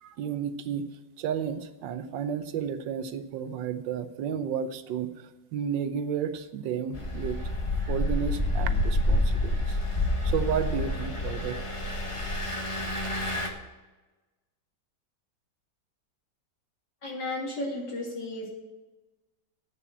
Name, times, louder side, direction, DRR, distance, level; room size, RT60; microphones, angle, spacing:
voice 1, 0.0-0.9 1.2-7.4 7.9-9.8 10.2-11.6, right 8 dB, 85° right, 11 dB, 1.5 m, -32 dB
Engine, 6.9-13.5, left 1 dB, 20° left, 1.2 m, -28 dB
voice 2, 17.0-18.5, left 2 dB, 70° left, -2 dB, 3.3 m, -33 dB
8.9 x 7.0 x 8.6 m, 1.2 s
omnidirectional pair, 1.9 m